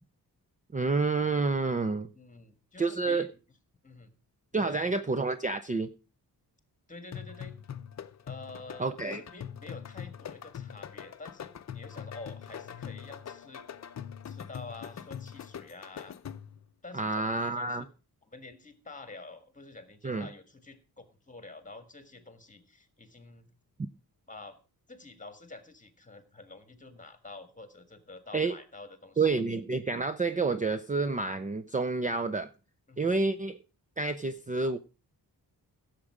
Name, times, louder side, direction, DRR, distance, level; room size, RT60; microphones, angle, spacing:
voice 1, 0.7-2.1 2.8-3.3 4.5-5.9 8.8-9.2 16.9-17.9 20.0-20.3 28.3-28.6 29.2-32.5 33.0-33.6 34.0-34.8, right 3 dB, 20° right, 11 dB, 0.5 m, -29 dB
voice 2, 2.1-3.3 3.8-4.1 4.5-4.9 6.9-7.6 8.3-13.7 14.3-16.2 16.8-17.9 18.3-23.6 24.3-24.6 24.9-29.4 32.9-33.1, left 3 dB, 20° left, 9 dB, 1.7 m, -48 dB
sound 1, 7.1-16.7, left 8 dB, 45° left, 0.6 m, -43 dB
16.0 x 7.4 x 4.9 m, 0.34 s
wide cardioid pair, 140°, 38 cm